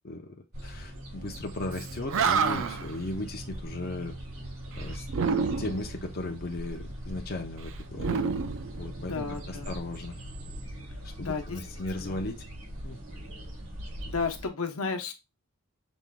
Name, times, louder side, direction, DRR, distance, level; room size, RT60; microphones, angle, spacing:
voice 1, 0.0-0.4 0.6-4.1 4.7-5.0 5.6-8.2 8.8-10.1 11.2-12.4 12.8-13.0, left 2 dB, 45° left, 3 dB, 0.7 m, -36 dB
sound 1, 0.5-14.5, right 1 dB, 85° right, 2.4 m, -41 dB
Animal, 1.8-2.9 5.1-5.9 8.0-9.3, right 5 dB, 65° right, 0.5 m, -28 dB
voice 2, 9.1-9.7 11.2-11.6 12.0-12.2 14.1-15.1, left 4 dB, 85° left, 5 dB, 0.8 m, -33 dB
6.0 x 3.7 x 2.2 m, 0.24 s
head